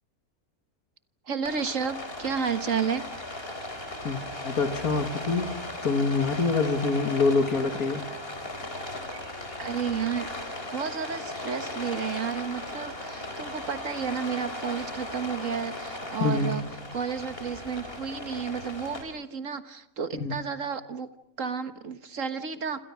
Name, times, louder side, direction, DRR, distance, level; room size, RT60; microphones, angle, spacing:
voice 1, 1.3-3.1 9.6-16.6 16.9-21.1 21.4-22.8, right 6 dB, 60° right, 11 dB, 1.7 m, -32 dB
Rain, 1.4-19.0, left 1 dB, 40° left, 4.6 m, -37 dB
voice 2, 4.0-5.5 5.8-8.0 16.2-16.6 20.1-20.3, left 4 dB, 80° left, 8 dB, 2.7 m, -26 dB
28.5 x 27.5 x 6.3 m, 0.75 s
omnidirectional pair, 1.5 m